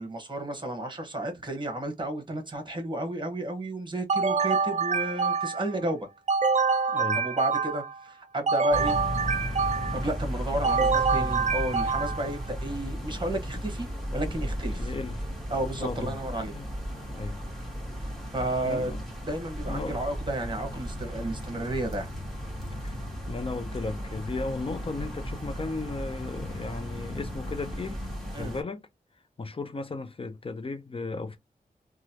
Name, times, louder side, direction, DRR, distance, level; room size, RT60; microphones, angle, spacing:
voice 1, 0.0-6.1 7.1-9.0 9.9-13.9 14.1-14.9 15.5-16.5 18.3-18.9 19.3-22.1 28.3-28.5, right 1 dB, 30° right, 1.1 m, -32 dB
sound 1, 4.1-5.8 6.3-8.0 8.5-10.1 10.6-12.3, right 5 dB, 50° right, 0.4 m, -26 dB
voice 2, 6.9-7.2 10.6-10.9 14.8-15.2 15.8-16.1 16.5-16.7 17.1-17.4 18.6-19.0 19.7-20.0 22.8-23.0 23.3-28.0 28.3-28.9 29.4-31.4, left 3 dB, 40° left, 0.5 m, -35 dB
sound 2, 8.7-28.6, equal, ahead, 1.4 m, -35 dB
3.0 x 2.3 x 2.8 m
wide cardioid pair, 65°, 15 cm